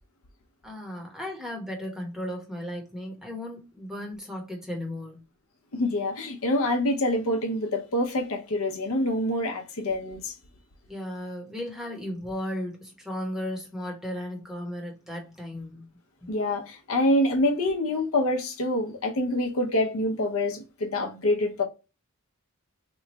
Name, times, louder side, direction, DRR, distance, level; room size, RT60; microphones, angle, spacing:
voice 1, 0.6-5.2 10.9-15.9 16.2-16.3, left 1 dB, ahead, 0.8 m, -35 dB
voice 2, 5.7-10.3 16.3-21.6, left 1 dB, 70° left, 0.7 m, -26 dB
3.0 x 2.2 x 4.0 m
head